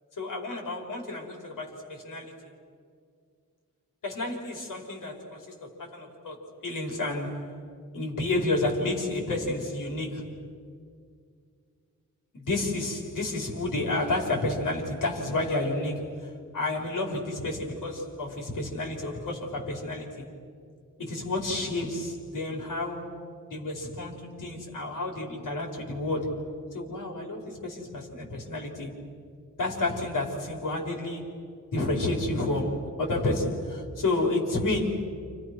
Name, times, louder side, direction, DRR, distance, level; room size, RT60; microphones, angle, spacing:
voice 1, 0.2-2.5 4.0-7.5 7.9-10.4 12.3-20.3 21.0-23.2 23.5-28.9 29.6-35.1, left 2 dB, 80° left, 0 dB, 5.1 m, -31 dB
30.0 x 29.5 x 6.3 m, 2.2 s
wide cardioid pair, 145°, 32 cm